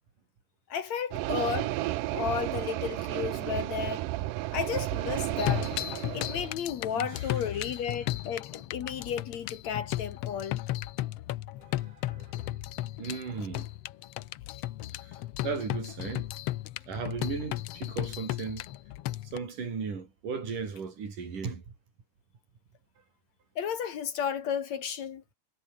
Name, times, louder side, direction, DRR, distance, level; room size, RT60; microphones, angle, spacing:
voice 1, 0.7-1.8 2.1-4.1 4.5-5.7 6.1-10.6 23.6-25.2, left 8 dB, 60° left, 2.6 m, -33 dB
sound 1, 1.1-6.5, right 17 dB, 90° right, 2.3 m, -32 dB
sound 2, 5.4-19.4, left 15 dB, 85° left, 1.3 m, -35 dB
voice 2, 6.9-7.4 11.6-12.7 13.0-13.7 15.0-15.2 15.4-16.3 16.9-18.7 19.3-21.6, right 5 dB, 75° right, 6.2 m, -37 dB
omnidirectional pair, 3.8 m